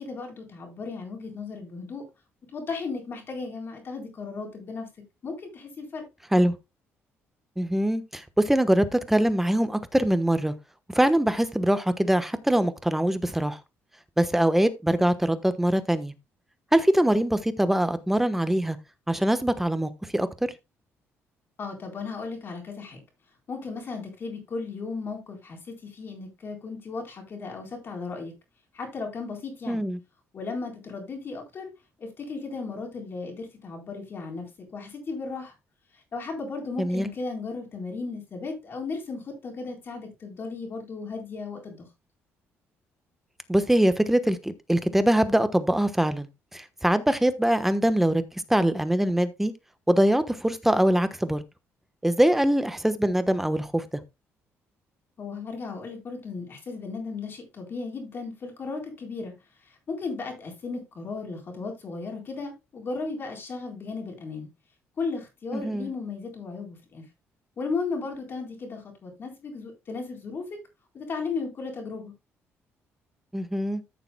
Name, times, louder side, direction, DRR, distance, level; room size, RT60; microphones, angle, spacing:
voice 1, 0.0-2.1 2.5-4.9 5.2-6.1 21.6-23.0 23.5-28.3 28.7-29.8 30.3-31.7 32.0-35.5 36.1-41.9 55.2-59.3 59.6-64.5 65.0-67.0 67.6-70.5 70.9-72.1, left 4 dB, 45° left, 4.2 m, -35 dB
voice 2, 7.6-10.5 10.9-13.6 14.2-16.1 16.7-18.8 19.1-20.3 29.7-30.0 36.8-37.1 43.5-48.2 48.5-49.5 49.9-51.4 52.0-54.0 65.5-65.9 73.3-73.8, right 1 dB, 5° right, 1.1 m, -23 dB
14.0 x 6.9 x 2.2 m
cardioid pair, 100°, 5 cm